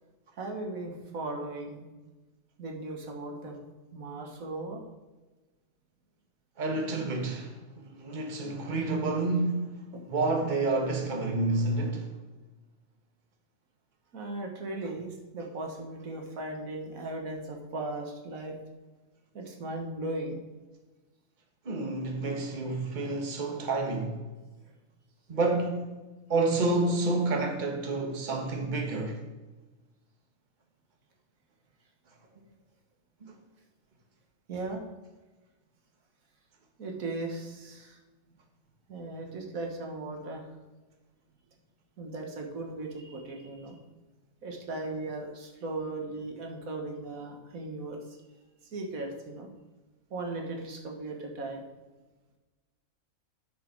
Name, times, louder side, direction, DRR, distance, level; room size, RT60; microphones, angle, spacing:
voice 1, 0.4-1.9 2.6-3.6 3.9-4.8 9.9-10.0 14.1-18.5 19.3-20.4 34.5-34.8 36.8-38.0 38.9-40.5 42.0-43.8 44.4-48.0 48.7-49.5 50.1-51.6, right 2 dB, 80° right, 1.9 m, -37 dB
voice 2, 6.6-12.1 21.6-24.2 25.3-25.9 26.3-29.2 33.2-33.3, right 2 dB, 35° right, 1.5 m, -29 dB
9.3 x 6.4 x 4.6 m
omnidirectional pair, 1.4 m